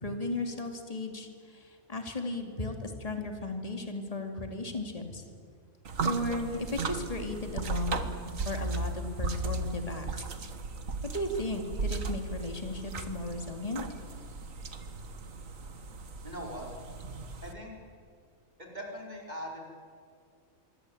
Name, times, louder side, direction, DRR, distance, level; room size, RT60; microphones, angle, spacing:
voice 1, 0.0-5.2 6.0-8.1 8.5-10.1 11.0-13.9, left 2 dB, 25° left, 4 dB, 2.7 m, -35 dB
sound 1, 5.8-17.5, right 3 dB, 70° right, 1.9 m, -36 dB
voice 2, 16.2-16.7 17.4-17.7 18.6-19.6, equal, 30° right, -1 dB, 5.0 m, -40 dB
26.5 x 23.5 x 8.7 m, 2.2 s
omnidirectional pair, 1.4 m